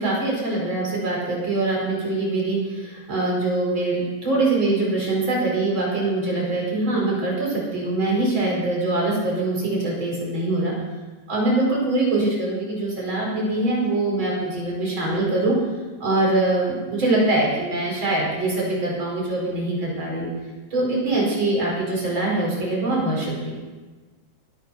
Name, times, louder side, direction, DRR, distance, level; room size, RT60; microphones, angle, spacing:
voice 1, 0.0-10.7 11.3-15.6 16.0-20.3 20.7-23.5, right 2 dB, 25° right, -3 dB, 5.2 m, -23 dB
21.5 x 9.2 x 5.9 m, 1.3 s
omnidirectional pair, 5.0 m